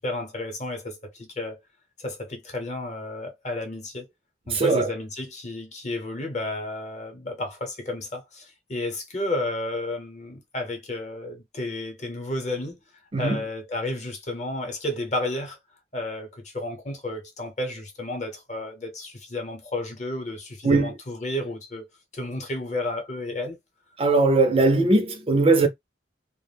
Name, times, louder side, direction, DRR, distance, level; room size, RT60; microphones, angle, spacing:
voice 1, 0.0-1.6 2.0-4.1 4.5-12.8 13.2-15.6 15.9-21.9 22.1-23.6, left 1 dB, 40° left, 0.8 m, -32 dB
voice 2, 4.5-4.9 13.1-13.4 20.6-20.9 24.0-25.7, right 3 dB, 30° right, 0.4 m, -20 dB
2.4 x 2.1 x 3.2 m
head